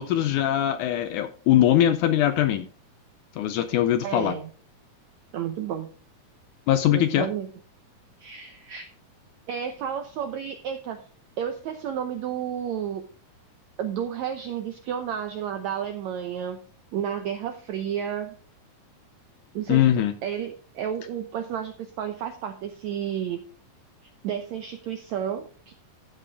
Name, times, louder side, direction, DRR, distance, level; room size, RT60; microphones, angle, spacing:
voice 1, 0.0-2.7 3.4-4.3 6.7-7.3 19.7-20.1, left 11 dB, 80° left, 10 dB, 1.8 m, -21 dB
voice 2, 4.0-4.5 5.3-5.9 6.9-7.5 8.2-8.9 9.5-11.0 11.4-13.0 13.8-16.6 16.9-18.3 19.5-19.8 20.2-23.4 24.0-25.7, right 9 dB, 85° right, 7 dB, 1.6 m, -31 dB
13.5 x 7.7 x 3.5 m, 0.40 s
omnidirectional pair, 4.3 m